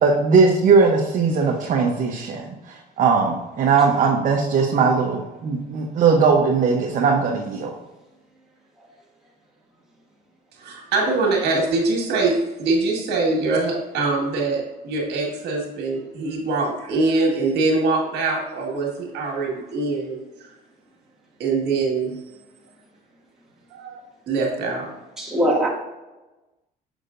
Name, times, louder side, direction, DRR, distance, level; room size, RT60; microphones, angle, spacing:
voice 1, 0.0-2.4 3.0-7.7, right 5 dB, 50° right, 0 dB, 0.9 m, -19 dB
voice 2, 10.6-20.2 21.4-22.2 23.7-24.0 24.3-24.9, right 3 dB, 80° right, -1 dB, 1.8 m, -23 dB
voice 3, 25.2-25.7, equal, 5° right, -6 dB, 2.0 m, -21 dB
6.4 x 6.4 x 2.5 m, 1.1 s
cardioid pair, 110°, 17 cm